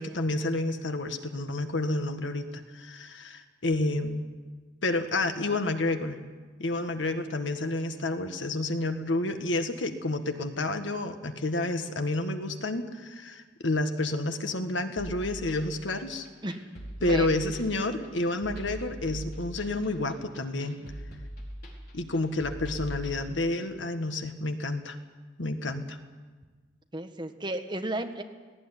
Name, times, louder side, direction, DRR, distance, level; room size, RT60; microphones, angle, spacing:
voice 1, 0.0-2.5 2.7-4.2 4.8-6.2 6.6-16.3 17.0-20.8 21.9-25.0 25.4-26.0, left 2 dB, 75° left, 7 dB, 1.6 m, -30 dB
sound 1, 15.0-23.2, equal, 55° left, 4.8 m, -40 dB
voice 2, 26.9-28.2, right 1 dB, 25° right, 6 dB, 1.4 m, -33 dB
18.0 x 16.5 x 10.0 m, 1.4 s
head